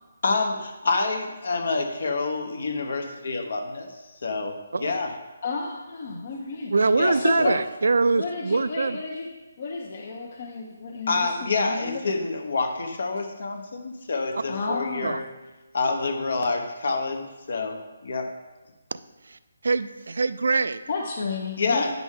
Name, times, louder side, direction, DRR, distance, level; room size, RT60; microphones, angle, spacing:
voice 1, 0.2-3.9 4.2-5.1 7.0-7.6 11.1-15.2 15.7-18.3 21.6-21.9, left 3 dB, 60° left, 5 dB, 1.1 m, -27 dB
voice 2, 5.4-7.6 8.1-9.3 9.6-12.2 14.5-15.2 20.9-21.9, left 4 dB, 40° left, -1 dB, 0.8 m, -32 dB
voice 3, 6.7-9.0 15.0-15.2 19.3-19.4 19.6-20.8, right 3 dB, 75° right, 13 dB, 0.4 m, -23 dB
9.5 x 6.0 x 3.7 m, 1.1 s
hypercardioid pair, 170°, 0 cm